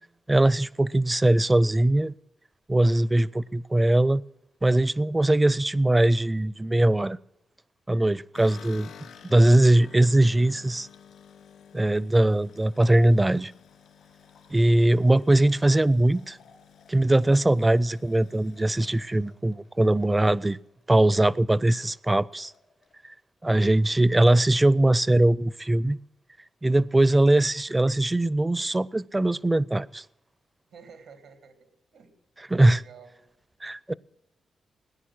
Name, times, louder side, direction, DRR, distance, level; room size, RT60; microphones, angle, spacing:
voice 1, 0.3-2.1 2.7-4.2 4.6-7.2 7.9-8.9 9.3-10.9 11.7-13.5 14.5-16.4 16.9-20.6 20.9-22.5 23.4-26.0 26.6-30.0 32.5-32.8 33.6-33.9, right 1 dB, 20° right, 0.4 m, -21 dB
sound 1, 8.3-20.6 20.9-21.6 21.8-21.9 22.2-22.9, left 7 dB, 85° left, 2.3 m, -52 dB
voice 2, 30.7-32.1 32.6-33.1, right 6 dB, 90° right, 2.4 m, -50 dB
18.5 x 9.9 x 6.2 m
cardioid pair, 65°, 0 cm